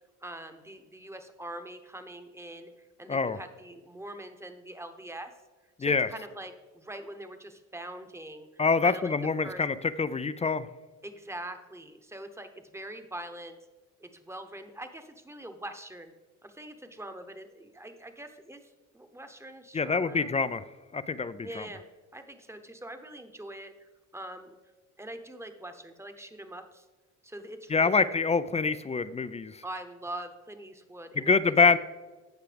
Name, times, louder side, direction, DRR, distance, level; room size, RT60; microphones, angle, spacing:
voice 1, 0.2-5.3 5.8-9.1 9.4-9.6 11.0-13.6 14.0-16.1 16.4-20.3 21.4-21.9 22.1-24.6 25.0-26.8 27.2-28.3 29.6-31.4, right 1 dB, 10° right, 7 dB, 1.0 m, -43 dB
voice 2, 8.6-10.7 19.7-20.6 20.9-21.7 27.7-29.6 31.2-31.8, left 4 dB, 20° left, 14 dB, 0.4 m, -25 dB
16.0 x 5.8 x 3.4 m, 1.3 s
cardioid pair, 90°, 30 cm